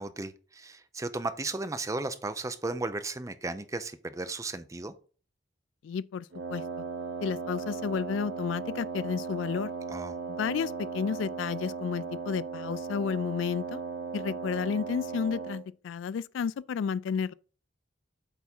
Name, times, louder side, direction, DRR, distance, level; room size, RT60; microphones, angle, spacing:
voice 1, 0.0-4.9 9.9-10.1, right 2 dB, 15° right, 0.5 m, -35 dB
voice 2, 5.8-6.6 7.2-9.7 10.3-13.8 14.1-17.3, left 6 dB, 80° left, 0.3 m, -32 dB
Wind instrument woodwind instrument, 6.3-15.7, right 5 dB, 85° right, 0.8 m, -37 dB
8.1 x 3.6 x 4.3 m
head